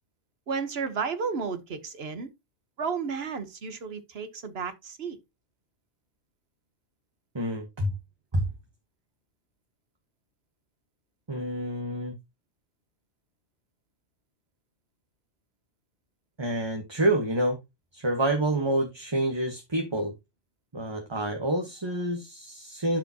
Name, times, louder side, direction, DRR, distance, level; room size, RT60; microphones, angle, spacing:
voice 1, 0.5-2.3 2.8-5.2, right 5 dB, 70° right, 1.4 m, -32 dB
voice 2, 7.3-7.9 8.3-8.4 11.3-12.1 16.4-17.6 17.9-20.1 20.7-23.0, right 1 dB, 25° right, 1.3 m, -28 dB
12.0 x 5.0 x 2.9 m
omnidirectional pair, 1.1 m